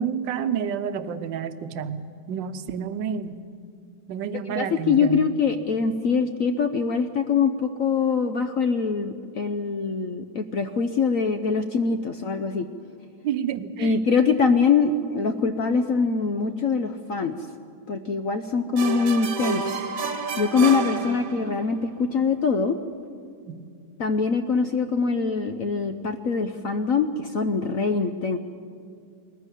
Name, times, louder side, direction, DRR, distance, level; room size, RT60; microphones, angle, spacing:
voice 1, 0.0-3.4 4.1-5.2 13.2-14.0 23.5-23.6, right 7 dB, 65° right, 11 dB, 1.5 m, -29 dB
voice 2, 4.5-12.7 13.8-17.4 17.9-19.8 20.4-22.8 24.0-28.4, left 5 dB, 65° left, 8 dB, 0.8 m, -23 dB
sound 1, 18.8-21.7, right 6 dB, 45° right, 1.5 m, -30 dB
21.0 x 14.5 x 9.9 m, 2.3 s
omnidirectional pair, 2.3 m